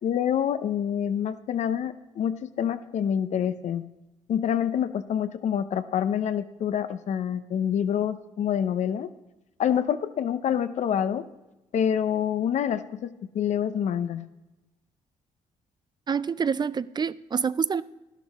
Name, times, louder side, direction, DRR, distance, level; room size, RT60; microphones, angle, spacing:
voice 1, 0.0-3.9 4.3-9.1 9.6-11.3 11.7-14.3, left 9 dB, 65° left, 0.7 m, -27 dB
voice 2, 16.1-17.8, right 6 dB, 35° right, 0.4 m, -27 dB
11.5 x 11.5 x 3.6 m
supercardioid pair, 65°, 13 cm